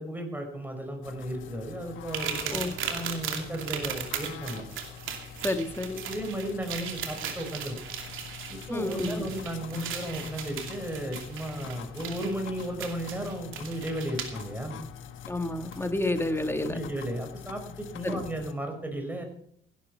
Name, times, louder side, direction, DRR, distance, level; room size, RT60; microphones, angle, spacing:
voice 1, 0.0-4.6 6.1-7.8 8.5-14.8 16.6-19.2, right 1 dB, 10° right, 4 dB, 5.2 m, -35 dB
sound 1, 1.0-18.5, left 9 dB, 80° left, 1.3 m, -45 dB
sound 2, 2.1-14.4 15.7-15.8 16.4-16.5, right 8 dB, 85° right, 2.6 m, -37 dB
voice 2, 5.4-6.0 8.7-9.3 15.3-16.8 18.0-18.3, left 2 dB, 10° left, 8 dB, 1.7 m, -30 dB
16.5 x 11.5 x 4.5 m, 0.66 s
cardioid pair, 90°, 20 cm